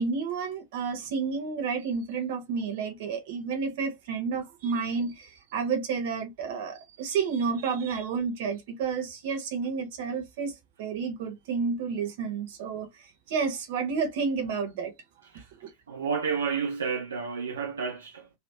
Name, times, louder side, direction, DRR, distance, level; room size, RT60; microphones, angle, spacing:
voice 1, 0.0-14.9 15.6-15.7, right 5 dB, 55° right, 1.1 m, -30 dB
voice 2, 15.9-18.3, right 6 dB, 75° right, 0.7 m, -31 dB
3.1 x 3.0 x 2.8 m
figure-of-eight pair, 90°, 0 cm